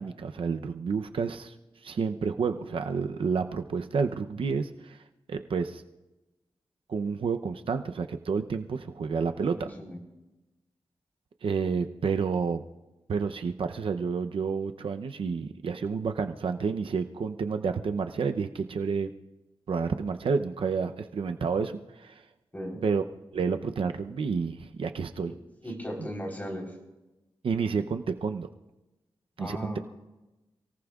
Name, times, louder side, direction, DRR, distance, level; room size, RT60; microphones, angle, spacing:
voice 1, 0.0-1.5 1.8-5.0 5.3-5.8 6.9-9.7 11.4-12.6 13.1-19.1 19.7-22.2 22.8-23.0 23.3-25.3 27.4-28.5 29.4-29.7, right 5 dB, 75° right, 7 dB, 0.7 m, -30 dB
voice 2, 9.5-10.0 22.5-22.8 25.3-25.4 25.6-26.7 29.4-29.8, equal, 20° left, 0 dB, 3.9 m, -37 dB
29.5 x 18.0 x 2.4 m, 1.0 s
wide cardioid pair, 125°, 9 cm